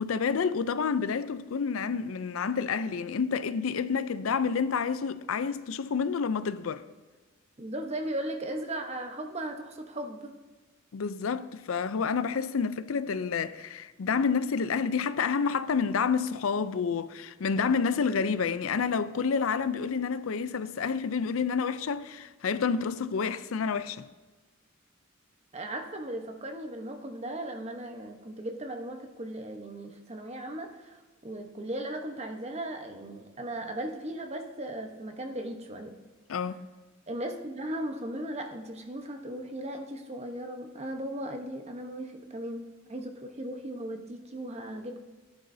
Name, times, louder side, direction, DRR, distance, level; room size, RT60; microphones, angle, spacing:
voice 1, 0.0-6.8 10.9-24.1 36.3-36.7, left 5 dB, 85° left, 0.5 m, -29 dB
voice 2, 7.6-10.3 25.5-31.0 31.2-35.9 37.1-45.0, right 1 dB, 30° right, 1.0 m, -37 dB
17.5 x 10.5 x 2.7 m
head